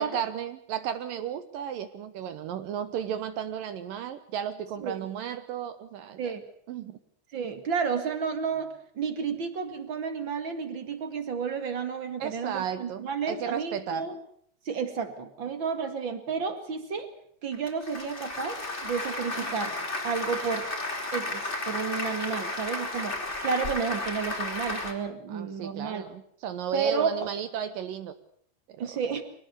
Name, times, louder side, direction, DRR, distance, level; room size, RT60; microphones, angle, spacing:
voice 1, 0.0-6.3 6.7-7.0 12.2-14.1 25.3-28.1 28.7-28.9, right 9 dB, 70° right, 12 dB, 2.2 m, -34 dB
voice 2, 7.3-14.1 14.7-17.1 17.4-19.7 20.0-20.7 21.1-23.2 23.4-26.1 26.7-27.3 28.8-29.2, right 6 dB, 45° right, 9 dB, 1.7 m, -31 dB
Applause, 17.5-24.9, left 2 dB, 15° left, 3.1 m, -33 dB
24.0 x 18.5 x 6.8 m, 0.63 s
omnidirectional pair, 4.9 m